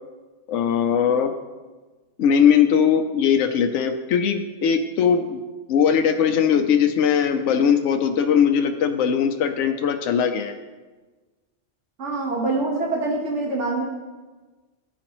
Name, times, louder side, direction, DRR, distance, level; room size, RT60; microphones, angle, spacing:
voice 1, 0.5-1.3 2.2-5.4 5.7-10.6, left 7 dB, 75° left, 5 dB, 0.9 m, -20 dB
voice 2, 12.0-13.8, right 2 dB, 70° right, -2 dB, 1.7 m, -25 dB
13.5 x 5.0 x 3.0 m, 1.3 s
omnidirectional pair, 1.3 m